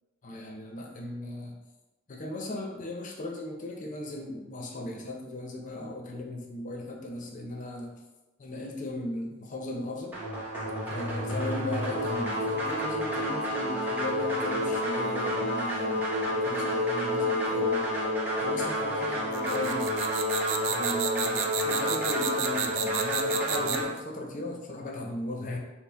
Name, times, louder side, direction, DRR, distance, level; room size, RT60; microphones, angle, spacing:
voice 1, 0.2-1.6 2.1-7.9 8.4-10.2 10.9-16.0 16.3-17.9 18.4-19.9 20.7-25.6, left 2 dB, 40° left, 1 dB, 0.6 m, -37 dB
sound 1, 10.1-23.8, equal, 10° right, 0.8 m, -29 dB
sound 2, 19.3-24.0, right 9 dB, 70° right, 0.3 m, -32 dB
4.3 x 2.1 x 3.4 m, 1.1 s
head